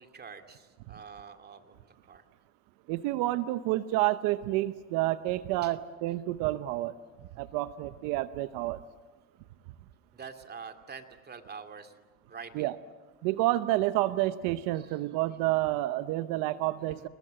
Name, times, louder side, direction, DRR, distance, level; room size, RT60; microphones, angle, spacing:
voice 1, 0.0-2.2 5.6-5.7 10.1-11.9 12.3-12.7 14.7-15.0 16.9-17.1, right 6 dB, 30° right, 7 dB, 2.5 m, -46 dB
voice 2, 2.9-6.9 7.4-8.8 12.5-12.8 13.2-17.1, right 16 dB, 80° right, 13 dB, 0.9 m, -29 dB
29.5 x 20.0 x 7.7 m, 1.3 s
supercardioid pair, 100°, 33 cm